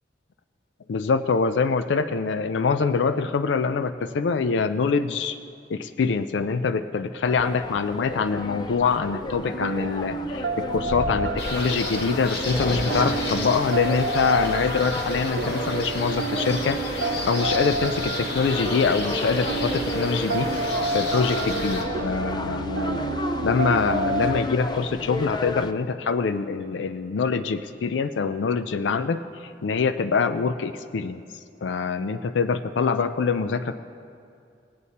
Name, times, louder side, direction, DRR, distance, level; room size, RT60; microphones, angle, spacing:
voice 1, 0.9-5.4 5.7-23.0 23.4-31.2 31.6-33.7, left 5 dB, 90° left, 10 dB, 0.4 m, -25 dB
sound 1, 7.2-25.7, left 2 dB, 25° left, 0.4 m, -33 dB
sound 2, 8.8-24.4, right 4 dB, 85° right, 0.5 m, -30 dB
sound 3, 11.4-21.8, left 2 dB, 65° left, 1.4 m, -32 dB
19.5 x 8.3 x 4.2 m, 2.4 s
head